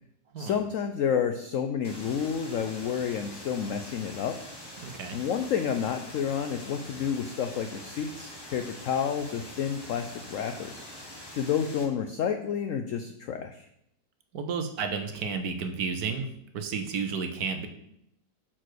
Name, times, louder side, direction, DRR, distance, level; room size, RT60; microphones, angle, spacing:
voice 1, 0.4-4.3 5.1-10.8 11.3-13.7, left 7 dB, 80° left, 6 dB, 0.7 m, -30 dB
sound 1, 1.8-11.8, left 1 dB, 15° left, 1.1 m, -44 dB
voice 2, 4.8-5.2 14.3-16.3 16.5-17.7, right 5 dB, 65° right, 6 dB, 1.1 m, -32 dB
6.1 x 4.5 x 6.4 m, 0.76 s
omnidirectional pair, 1.9 m